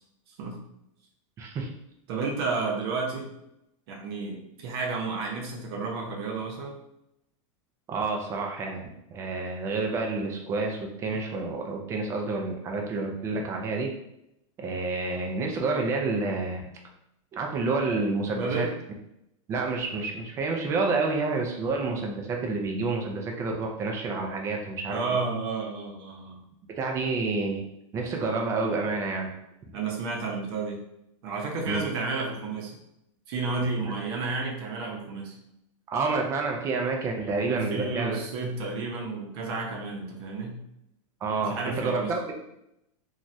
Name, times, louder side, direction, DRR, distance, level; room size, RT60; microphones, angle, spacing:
voice 1, 1.4-1.7 7.9-13.9 14.6-16.6 17.3-18.7 19.5-25.0 26.7-27.6 27.9-29.3 31.7-31.8 35.9-38.2 41.2-42.3, right 3 dB, 15° right, 1 dB, 0.4 m, -29 dB
voice 2, 2.1-3.3 3.9-6.8 18.3-18.7 24.9-26.4 29.7-30.8 31.2-32.7 33.3-35.3 37.2-40.6 41.4-42.1, right 3 dB, 50° right, 0 dB, 0.7 m, -31 dB
3.0 x 2.3 x 2.6 m, 0.82 s
supercardioid pair, 160°, 17 cm